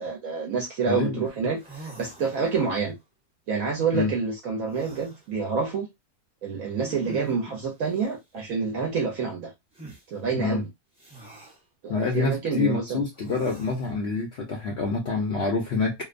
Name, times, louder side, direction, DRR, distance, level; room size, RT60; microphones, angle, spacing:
voice 1, 0.0-3.0 3.5-5.9 6.4-9.5 10.1-10.7 11.2-11.5 11.8-13.0, right 5 dB, 70° right, 1.0 m, -28 dB
voice 2, 0.9-1.2 3.9-4.1 10.3-10.6 11.9-15.9, left 4 dB, 60° left, 0.7 m, -26 dB
sound 1, 1.3-1.4 1.6-2.8 4.6-5.2 6.8-7.7 9.7-10.0 11.0-11.6 13.1-13.9, right 2 dB, 5° right, 0.6 m, -44 dB
2.8 x 2.1 x 2.4 m
omnidirectional pair, 1.6 m